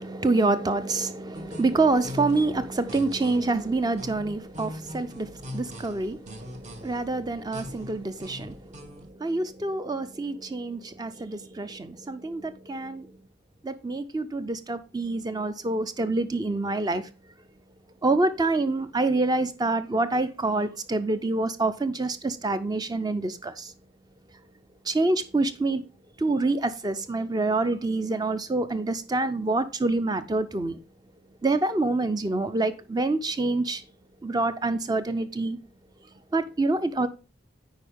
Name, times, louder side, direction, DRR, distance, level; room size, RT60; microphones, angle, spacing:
voice 1, 0.0-13.2 13.6-17.0 18.0-23.7 24.9-25.8 26.2-30.8 31.4-33.8 34.2-35.6 36.3-37.1, right 2 dB, 20° right, 0.5 m, -27 dB
sound 1, 1.3-9.1, left 1 dB, 35° right, 1.0 m, -41 dB
9.6 x 4.6 x 3.5 m
head